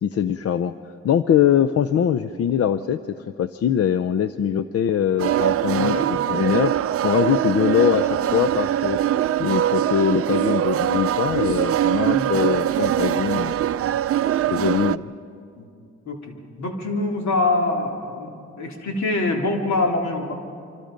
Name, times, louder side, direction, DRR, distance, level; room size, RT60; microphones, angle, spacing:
voice 1, 0.0-6.7 7.0-9.0 9.4-13.5 14.5-15.1, left 9 dB, 55° left, 12 dB, 0.6 m, -22 dB
sound 1, 5.2-15.0, right 11 dB, 50° right, 0.5 m, -22 dB
voice 2, 5.7-6.1 12.1-12.3 15.6-15.7 16.0-20.3, left 2 dB, 70° left, 1 dB, 3.2 m, -25 dB
26.5 x 25.0 x 5.2 m, 2.4 s
cardioid pair, 100°, 29 cm